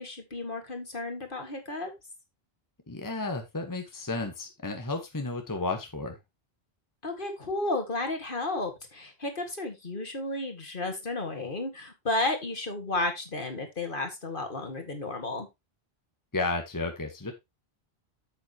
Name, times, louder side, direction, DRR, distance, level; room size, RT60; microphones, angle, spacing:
voice 1, 0.0-1.9 7.0-15.5, left 2 dB, 55° left, 5 dB, 2.3 m, -33 dB
voice 2, 2.9-6.2 16.3-17.3, left 3 dB, 20° left, 5 dB, 1.3 m, -32 dB
8.8 x 7.7 x 3.0 m, 0.21 s
omnidirectional pair, 1.0 m